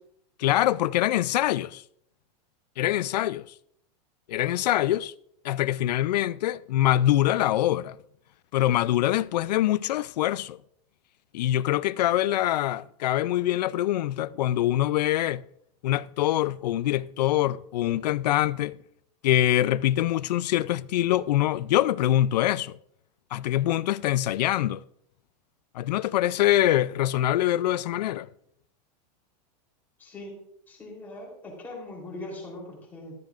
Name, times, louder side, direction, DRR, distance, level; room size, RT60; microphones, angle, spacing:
voice 1, 0.4-1.8 2.8-3.4 4.3-5.1 5.4-8.0 8.5-10.6 11.3-15.4 15.8-18.8 19.2-22.8 23.3-24.8 25.7-28.3, left 13 dB, 90° left, 0.5 m, -24 dB
voice 2, 30.0-30.4 30.7-33.2, left 2 dB, 10° left, 3.5 m, -40 dB
15.5 x 14.0 x 2.5 m
supercardioid pair, 180°, 20 cm